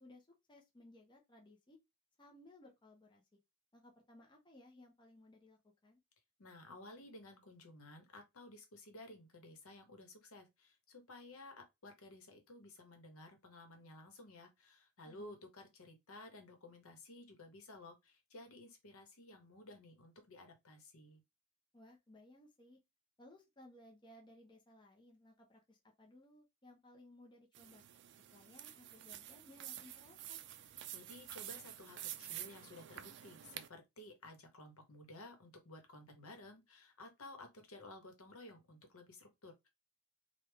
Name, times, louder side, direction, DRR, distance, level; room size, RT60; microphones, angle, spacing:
voice 1, 0.0-1.8 2.2-3.2 3.7-6.0 15.0-15.4 21.7-22.8 23.2-27.8 28.3-30.4, left 1 dB, 20° left, 0.7 m, -61 dB
voice 2, 6.4-21.2 30.9-39.7, left 2 dB, 70° left, 1.0 m, -55 dB
sound 1, 27.5-33.7, right 11 dB, 55° right, 0.4 m, -49 dB
3.4 x 2.3 x 3.3 m
head